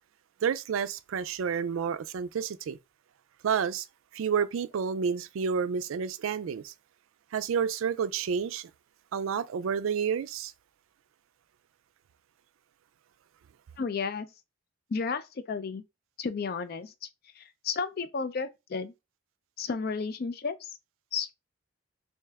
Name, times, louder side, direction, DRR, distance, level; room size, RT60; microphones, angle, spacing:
voice 1, 0.4-2.8 3.4-3.9 4.1-6.7 7.3-8.7 9.1-10.5, right 6 dB, 75° right, 0.3 m, -30 dB
voice 2, 13.8-14.3 14.9-15.8 16.2-17.1 17.4-18.9 19.6-20.7 21.1-21.3, left 5 dB, 45° left, 0.4 m, -33 dB
3.3 x 2.7 x 3.4 m
head